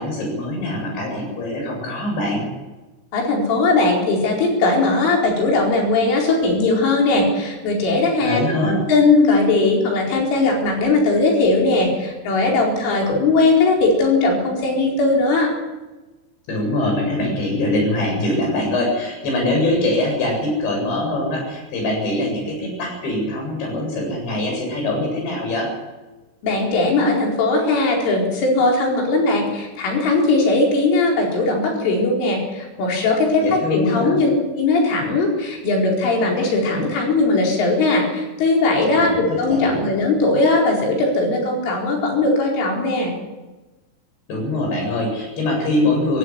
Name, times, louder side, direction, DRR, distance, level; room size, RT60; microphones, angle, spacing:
voice 1, 0.0-2.4 8.2-8.8 16.5-25.7 33.4-34.2 39.0-39.8 44.3-46.2, left 1 dB, 65° left, 1 dB, 10.0 m, -23 dB
voice 2, 3.1-8.4 8.9-15.5 26.4-34.3 34.6-43.1, left 3 dB, 90° left, 0 dB, 7.0 m, -19 dB
17.5 x 16.5 x 9.7 m, 1.1 s
omnidirectional pair, 5.5 m